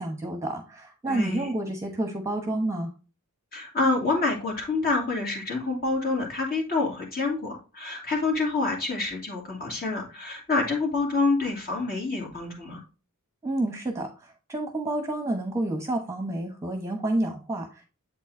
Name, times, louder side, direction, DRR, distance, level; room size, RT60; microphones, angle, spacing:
voice 1, 0.0-2.9 13.4-17.9, right 1 dB, 15° right, 3 dB, 1.0 m, -29 dB
voice 2, 1.1-1.5 3.5-12.8, left 3 dB, 45° left, -1 dB, 2.5 m, -27 dB
8.0 x 4.6 x 2.7 m, 0.32 s
head